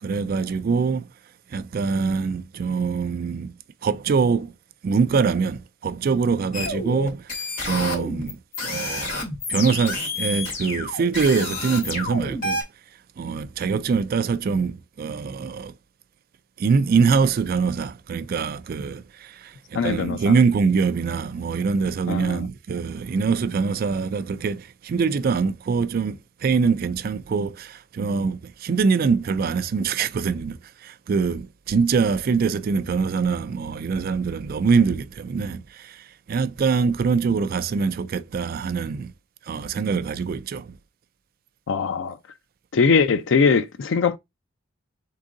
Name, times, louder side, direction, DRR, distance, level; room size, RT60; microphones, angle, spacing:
voice 1, 0.0-1.1 1.5-3.5 3.8-4.5 4.8-8.4 8.6-9.2 9.5-12.6 13.2-15.7 16.6-39.1 39.5-40.8, right 5 dB, 50° right, 0.3 m, -24 dB
sound 1, 6.5-12.6, left 2 dB, 45° left, 2.5 m, -29 dB
voice 2, 19.7-20.2 22.1-22.5 41.7-42.2 42.7-44.2, left 5 dB, 85° left, 0.4 m, -21 dB
3.8 x 3.7 x 3.7 m
head